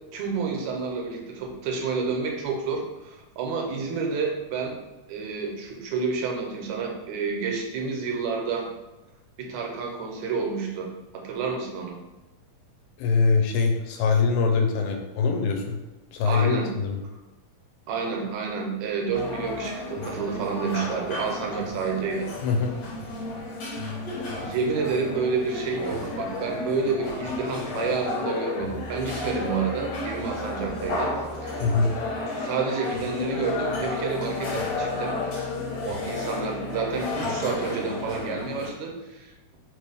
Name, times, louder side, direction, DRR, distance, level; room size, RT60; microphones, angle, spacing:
voice 1, 0.1-4.8 5.1-8.7 9.4-12.0 16.2-16.7 17.9-22.3 24.4-31.1 31.4-31.6 32.4-35.2 35.8-39.6, right 5 dB, 80° right, 1 dB, 1.8 m, -29 dB
voice 2, 13.0-15.8 16.1-17.0 22.4-22.7 31.6-31.9, left 4 dB, 85° left, 3 dB, 2.0 m, -23 dB
sound 1, 19.1-38.7, left 2 dB, 65° left, 2.0 m, -32 dB
4.5 x 3.0 x 3.4 m, 1.0 s
omnidirectional pair, 3.4 m